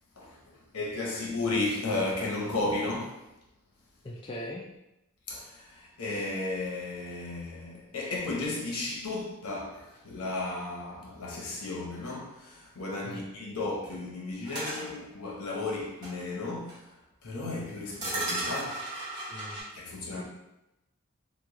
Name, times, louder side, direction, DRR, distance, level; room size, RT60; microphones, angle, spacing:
voice 1, 0.2-3.2 5.3-18.9 19.7-20.2, left 2 dB, 85° left, 0.9 m, -34 dB
voice 2, 4.0-4.6 13.0-13.2 19.3-19.6 20.2-20.3, left 1 dB, 20° left, 0.3 m, -40 dB
sound 1, 14.5-14.8 16.0-16.1 16.7-16.8 18.0-19.6, right 2 dB, 20° right, 1.1 m, -34 dB
3.0 x 2.3 x 3.7 m
head